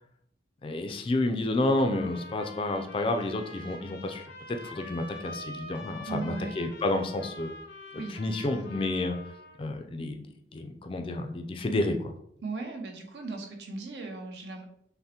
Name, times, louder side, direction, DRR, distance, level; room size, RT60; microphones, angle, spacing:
voice 1, 0.6-4.2 4.5-7.5 8.1-9.2 9.6-10.2 10.5-12.1, left 2 dB, 30° left, 6 dB, 0.3 m, -30 dB
sound 1, 1.8-9.6, left 2 dB, 75° left, 0.6 m, -45 dB
voice 2, 6.1-6.5 7.9-8.6 12.4-14.6, right 4 dB, 75° right, 2 dB, 0.7 m, -38 dB
5.5 x 2.1 x 2.8 m, 0.69 s
head